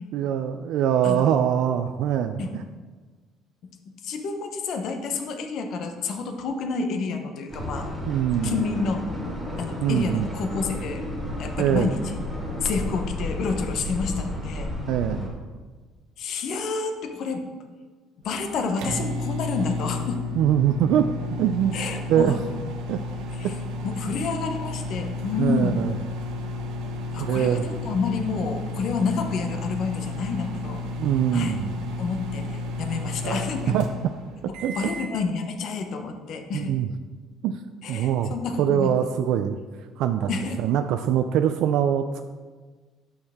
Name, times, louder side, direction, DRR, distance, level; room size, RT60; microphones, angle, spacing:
voice 1, 0.1-2.6 8.1-8.6 9.8-10.3 11.6-11.9 14.9-15.3 20.4-21.1 21.4-21.8 22.1-22.4 22.9-23.0 23.4-23.5 25.4-26.0 27.2-27.6 31.0-31.7 33.7-33.9 34.4-34.8 36.5-36.9 37.4-37.6 37.9-39.6 40.0-40.3 40.6-42.2, right 10 dB, 65° right, 8 dB, 0.3 m, -23 dB
voice 2, 1.0-1.4 2.4-2.5 4.0-7.9 8.4-9.0 9.6-11.0 11.4-12.1 12.6-14.7 16.2-17.4 18.2-20.2 21.7-22.4 23.3-25.8 27.1-30.8 31.3-31.6 32.0-33.8 34.7-36.8 37.8-38.9 40.3-40.6, left 4 dB, 50° left, 5 dB, 0.9 m, -29 dB
sound 1, 7.5-15.3, left 1 dB, ahead, 1.6 m, -32 dB
sound 2, 18.2-35.2, left 2 dB, 90° right, 1.1 m, -32 dB
7.9 x 6.4 x 3.6 m, 1.4 s
cardioid pair, 150°, 0 cm